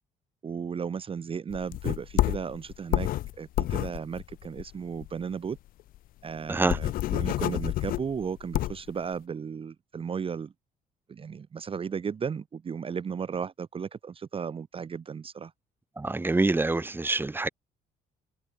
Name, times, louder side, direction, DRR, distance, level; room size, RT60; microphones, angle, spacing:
voice 1, 0.4-3.1 3.4-5.6 6.2-10.5 11.1-15.5, right 6 dB, 35° right, 1.3 m, -35 dB
sound 1, 1.5-5.2 5.6-5.7 5.9-6.0 6.4-8.9, left 15 dB, 60° left, 0.4 m, -29 dB
voice 2, 16.0-17.5, right 2 dB, 10° right, 1.5 m, -26 dB
cardioid pair, 110°, 17 cm